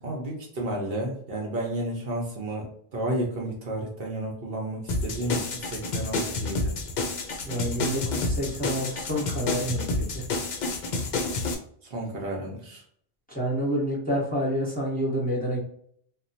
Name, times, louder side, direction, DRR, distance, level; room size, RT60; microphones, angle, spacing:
voice 1, 0.0-2.7 2.9-6.7 11.9-12.8, right 1 dB, 65° right, -1 dB, 0.9 m, -32 dB
sound 1, 4.9-11.5, left 3 dB, 55° left, 0.5 m, -29 dB
voice 2, 7.4-9.9 10.1-10.2 13.3-15.6, equal, 10° left, -5 dB, 1.0 m, -28 dB
3.0 x 2.2 x 2.7 m, 0.63 s
omnidirectional pair, 1.1 m